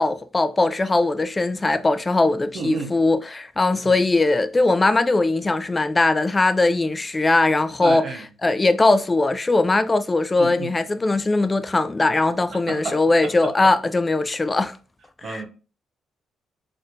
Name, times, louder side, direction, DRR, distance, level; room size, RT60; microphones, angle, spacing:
voice 1, 0.0-8.1 8.4-14.8 15.2-15.4, left 2 dB, 20° left, 0.3 m, -20 dB
voice 2, 2.5-2.9 3.8-4.0 7.8-8.3 10.4-10.7 12.7-13.0 15.2-15.5, right 3 dB, 60° right, 0.9 m, -31 dB
4.2 x 2.6 x 2.5 m
cardioid pair, 90°, 0 cm